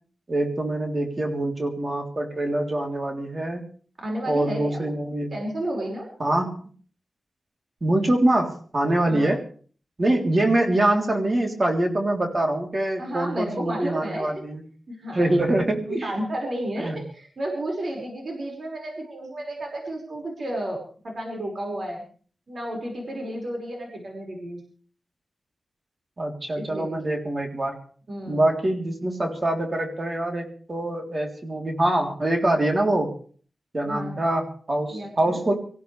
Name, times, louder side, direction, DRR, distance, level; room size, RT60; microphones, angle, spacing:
voice 1, 0.3-3.6 4.3-5.3 6.2-6.6 7.8-9.4 10.0-14.6 15.1-16.1 16.8-17.0 26.2-27.8 28.3-33.1 33.7-35.5, right 1 dB, 35° right, 2 dB, 3.6 m, -24 dB
voice 2, 4.0-4.9 5.3-6.1 9.0-9.3 13.0-14.4 14.9-15.3 15.9-20.8 21.0-22.0 22.5-24.6 26.5-27.0 28.1-28.5 33.8-34.2 34.9-35.4, right 1 dB, 55° right, 0 dB, 5.7 m, -32 dB
25.0 x 16.0 x 3.4 m, 0.44 s
wide cardioid pair, 85°, 0 cm